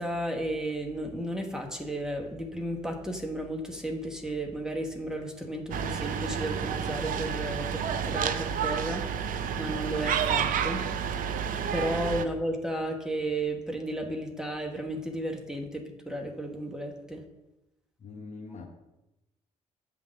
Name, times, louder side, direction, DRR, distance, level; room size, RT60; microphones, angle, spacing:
voice 1, 0.0-9.3 9.6-10.9 11.7-17.2, right 1 dB, 5° right, 1.3 m, -33 dB
sound 1, 5.7-12.3, right 7 dB, 55° right, 0.6 m, -30 dB
voice 2, 18.0-18.7, left 3 dB, 45° left, 1.4 m, -42 dB
7.9 x 3.7 x 6.3 m
hypercardioid pair, 50°, 17 cm